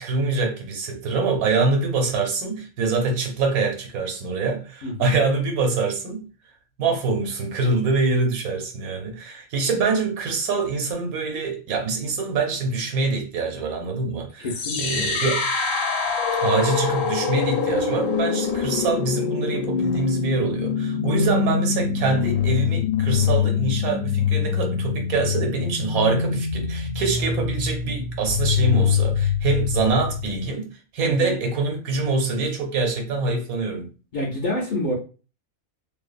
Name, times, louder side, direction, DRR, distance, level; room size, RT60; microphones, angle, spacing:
voice 1, 0.0-6.3 6.8-14.5 14.7-15.5 16.4-30.7 30.9-33.9, right 4 dB, 80° right, 1.1 m, -25 dB
voice 2, 4.8-5.2 14.4-15.1 31.0-31.4 34.1-34.9, left 1 dB, 55° left, 0.5 m, -28 dB
sound 1, 14.5-30.5, left 6 dB, 70° left, 0.9 m, -24 dB
2.6 x 2.2 x 2.5 m
omnidirectional pair, 1.5 m